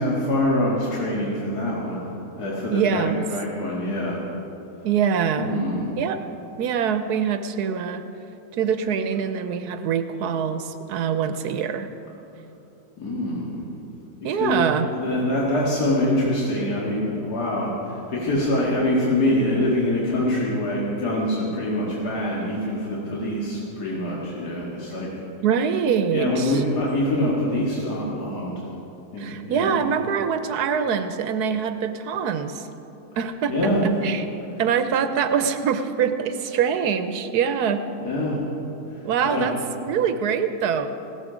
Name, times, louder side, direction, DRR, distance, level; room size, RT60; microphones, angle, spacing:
voice 1, 0.0-2.1 2.4-4.3 5.4-5.9 13.0-13.6 14.3-25.1 26.1-28.6 29.1-29.7 33.5-33.8 38.0-38.4 39.2-39.5, left 1 dB, 80° left, -6 dB, 2.5 m, -25 dB
voice 2, 2.7-3.3 4.8-5.6 6.0-6.2 6.6-8.0 8.5-11.9 14.2-14.9 25.4-26.6 29.2-32.7 33.2-33.5 34.0-34.2 34.6-37.8 39.0-39.5 39.8-40.9, right 7 dB, 85° right, 9 dB, 1.3 m, -24 dB
16.5 x 13.5 x 5.0 m, 2.9 s
omnidirectional pair, 1.7 m